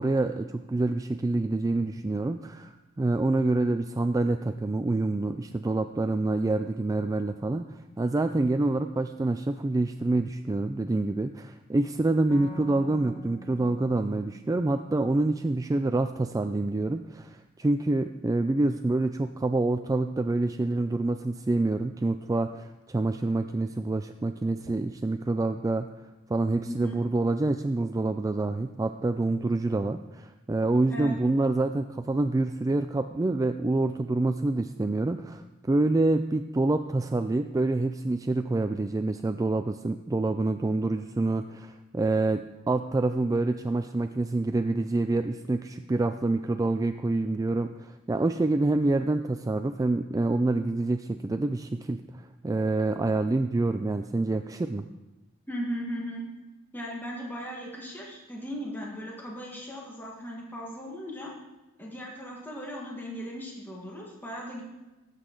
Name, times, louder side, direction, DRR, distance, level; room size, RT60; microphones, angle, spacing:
voice 1, 0.0-2.7 3.0-25.9 26.3-54.9, right 2 dB, 15° right, 8 dB, 0.3 m, -27 dB
sound 1, 12.3-15.8, right 1 dB, 70° left, 2.1 m, -47 dB
voice 2, 26.6-27.0 30.9-31.2 55.5-56.2 56.7-61.3 61.8-64.6, equal, 10° left, -3 dB, 1.7 m, -37 dB
19.0 x 8.2 x 3.8 m, 1.1 s
head